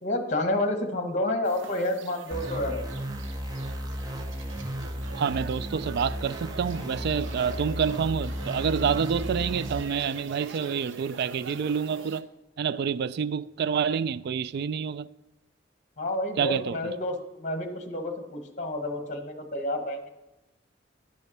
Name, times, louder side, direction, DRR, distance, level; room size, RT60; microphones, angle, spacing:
voice 1, 0.0-2.8 16.0-20.0, left 1 dB, 40° left, 1.1 m, -29 dB
sound 1, 1.4-12.2, right 4 dB, 85° right, 0.7 m, -44 dB
sound 2, 2.3-9.8, equal, 20° right, 0.9 m, -34 dB
Sink (filling or washing), 4.0-11.3, equal, ahead, 1.5 m, -50 dB
voice 2, 5.2-12.3 12.6-15.1 16.4-16.9, right 7 dB, 60° right, 0.3 m, -28 dB
10.0 x 5.4 x 6.0 m
head